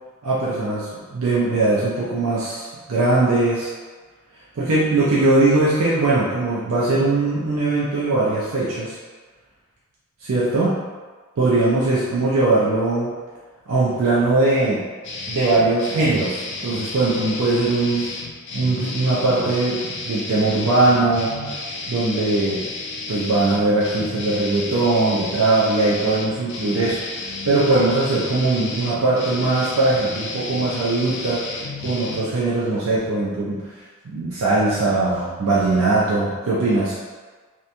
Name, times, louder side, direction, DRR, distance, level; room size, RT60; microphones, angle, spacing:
voice 1, 0.2-3.7 4.6-9.0 10.2-10.8 11.4-13.1 13.7-14.8 15.3-18.1 18.5-21.3 21.9-22.6 23.1-31.5 31.8-33.6 34.0-37.0, right 2 dB, 80° right, -7 dB, 0.5 m, -20 dB
sound 1, 15.0-32.2, left 3 dB, 55° left, 0.3 m, -32 dB
2.9 x 2.1 x 2.5 m, 1.4 s
head